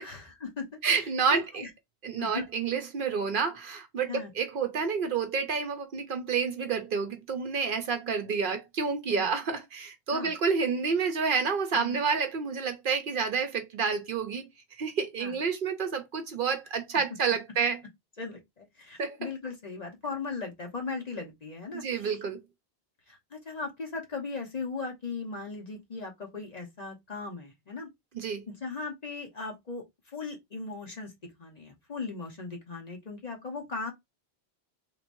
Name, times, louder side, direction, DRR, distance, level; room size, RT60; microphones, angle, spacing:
voice 1, 0.0-0.7 1.3-1.7 2.2-2.5 4.1-4.3 9.1-9.3 10.1-10.3 11.7-12.0 15.2-15.3 18.2-22.1 23.1-27.9 28.5-31.1 31.4-33.9, left 4 dB, 40° left, 1.0 m, -38 dB
voice 2, 0.8-1.7 2.0-14.5 14.8-17.8 19.0-19.3 21.7-22.4 28.1-28.4, right 5 dB, 60° right, 0.7 m, -29 dB
3.3 x 2.9 x 2.6 m
omnidirectional pair, 1.1 m